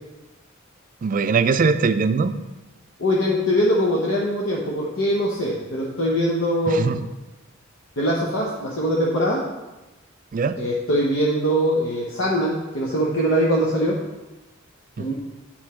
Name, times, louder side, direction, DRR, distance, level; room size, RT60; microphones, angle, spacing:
voice 1, 1.0-2.3 6.7-7.0 10.3-10.6 15.0-15.1, right 5 dB, 40° right, 11 dB, 0.4 m, -21 dB
voice 2, 3.0-6.8 8.0-9.4 10.6-14.0 15.0-15.1, equal, 70° left, -4 dB, 1.0 m, -22 dB
9.7 x 4.4 x 4.3 m, 1.1 s
head